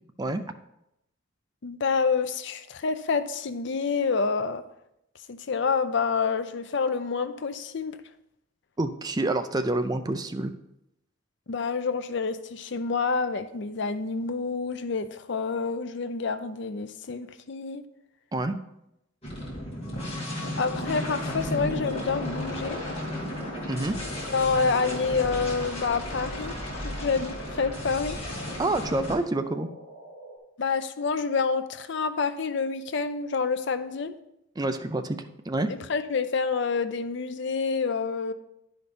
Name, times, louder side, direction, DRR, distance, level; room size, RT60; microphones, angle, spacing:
voice 1, 1.6-4.6 5.3-8.0 11.5-17.8 20.4-22.8 24.3-26.6 26.8-28.2 30.6-34.1 35.7-38.3, left 5 dB, 60° left, 11 dB, 0.5 m, -28 dB
voice 2, 8.8-10.5 18.3-18.6 23.7-24.0 28.6-29.7 34.6-35.7, right 2 dB, 20° right, 8 dB, 0.5 m, -27 dB
sound 1, 19.2-29.1, left 1 dB, 30° left, 2.4 m, -34 dB
sound 2, 21.5-30.4, equal, 40° right, 3.6 m, -48 dB
11.0 x 5.1 x 4.2 m, 0.82 s
head